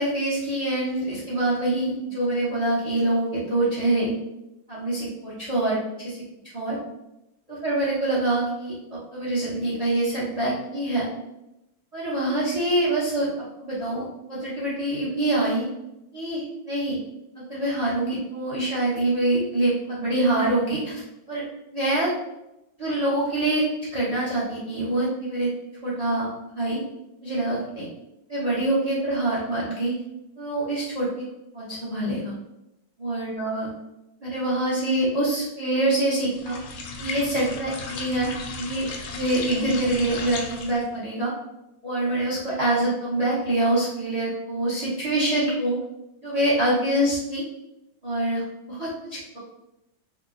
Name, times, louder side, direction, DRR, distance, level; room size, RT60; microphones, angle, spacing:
voice 1, 0.0-4.1 4.7-6.2 6.5-6.8 7.5-11.1 11.9-13.3 13.6-15.7 16.1-17.0 17.5-21.4 21.7-22.1 22.8-23.7 23.9-25.5 25.8-26.3 26.6-26.8 27.2-27.9 28.3-29.9 30.4-31.2 31.5-32.3 33.0-33.7 34.2-36.6 37.0-38.9 39.1-41.3 41.8-45.8 46.2-47.4 48.0-49.4, right 1 dB, 50° right, -7 dB, 0.4 m, -25 dB
sound 1, 36.3-40.9, left 4 dB, 75° left, 1.3 m, -35 dB
3.5 x 2.1 x 3.6 m, 0.90 s
omnidirectional pair, 2.2 m